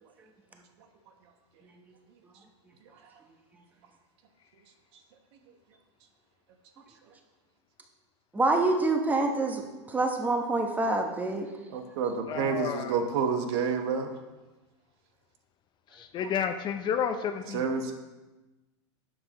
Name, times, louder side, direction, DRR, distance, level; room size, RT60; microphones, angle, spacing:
voice 1, 8.3-11.5, right 2 dB, 10° right, 3 dB, 1.0 m, -26 dB
voice 2, 11.7-14.1 16.2-16.3 17.5-17.9, right 6 dB, 60° right, 6 dB, 1.2 m, -29 dB
voice 3, 12.3-13.0 15.9-17.7, left 8 dB, 30° left, 8 dB, 0.5 m, -31 dB
11.0 x 7.6 x 3.0 m, 1.1 s
supercardioid pair, 135°, 16 cm